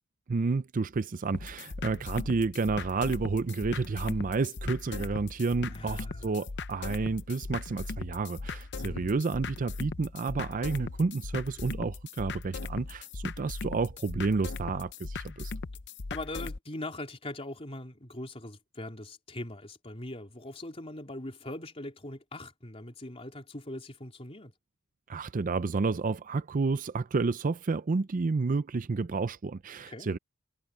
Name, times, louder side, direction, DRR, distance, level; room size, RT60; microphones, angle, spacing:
voice 1, 0.3-15.5 25.1-30.2, right 4 dB, 40° right, 0.5 m, -30 dB
sound 1, 1.3-16.6, left 3 dB, 55° left, 0.7 m, -39 dB
voice 2, 5.7-6.2 8.8-9.2 16.1-24.5 29.9-30.1, left 1 dB, 30° left, 3.7 m, -41 dB
head